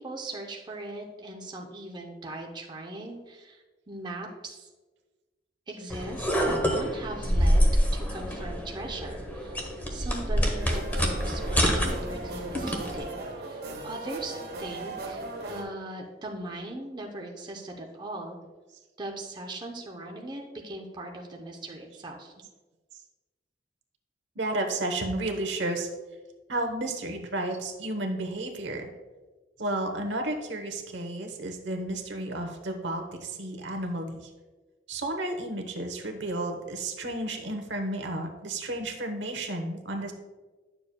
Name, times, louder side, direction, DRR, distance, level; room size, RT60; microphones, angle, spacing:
voice 1, 0.0-4.7 5.7-9.6 9.9-18.4 19.0-22.3, right 2 dB, 25° right, 0 dB, 0.7 m, -39 dB
sound 1, 5.9-13.0, equal, 10° left, 0.9 m, -26 dB
sound 2, 10.6-15.6, right 2 dB, 55° right, 1.7 m, -38 dB
voice 2, 24.4-25.9 26.5-28.9 29.6-34.3 34.9-40.1, right 1 dB, 85° right, 4 dB, 1.0 m, -32 dB
10.0 x 6.8 x 2.2 m, 1.3 s
head